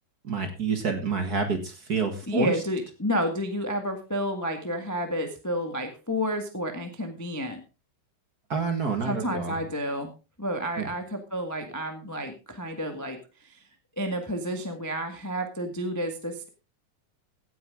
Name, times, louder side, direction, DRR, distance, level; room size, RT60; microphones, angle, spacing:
voice 1, 0.2-2.5 8.5-9.6 10.8-10.9, right 5 dB, 40° right, 6 dB, 1.7 m, -28 dB
voice 2, 2.3-7.6 9.0-10.1 10.4-13.6 14.0-16.5, equal, 15° left, 5 dB, 0.5 m, -30 dB
16.0 x 9.3 x 3.7 m, 0.32 s
omnidirectional pair, 3.6 m